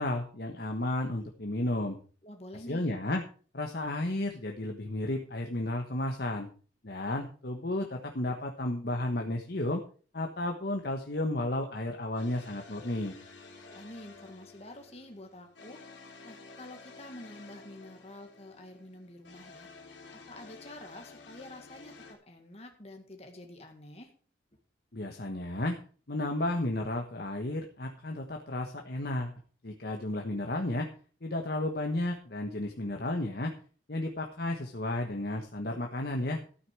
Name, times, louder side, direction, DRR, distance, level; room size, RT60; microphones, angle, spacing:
voice 1, 0.0-2.0 2.7-3.2 3.5-6.5 6.8-9.8 10.1-13.1 24.9-25.8 26.1-30.9 31.2-33.5 33.9-36.4, left 1 dB, 55° left, 3 dB, 1.3 m, -33 dB
voice 2, 2.2-3.0 13.7-15.8 16.2-19.7 20.1-24.1, left 1 dB, 35° left, 3 dB, 1.9 m, -48 dB
sound 1, 11.7-22.1, left 3 dB, 85° left, 3.3 m, -52 dB
13.0 x 9.0 x 4.7 m, 0.41 s
head